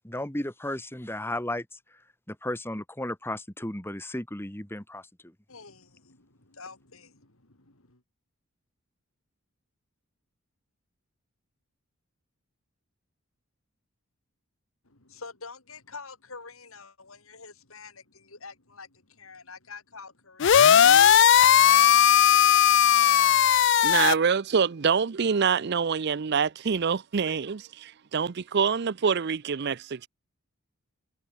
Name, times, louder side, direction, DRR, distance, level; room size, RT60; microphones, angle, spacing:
voice 1, 0.0-5.4, left 1 dB, 10° left, 2.0 m, -35 dB
voice 2, 5.5-8.0 14.8-23.6, left 4 dB, 80° left, 4.3 m, -48 dB
sound 1, 20.4-24.1, left 9 dB, 60° left, 0.4 m, -17 dB
voice 3, 23.8-30.1, right 6 dB, 50° right, 0.5 m, -26 dB
head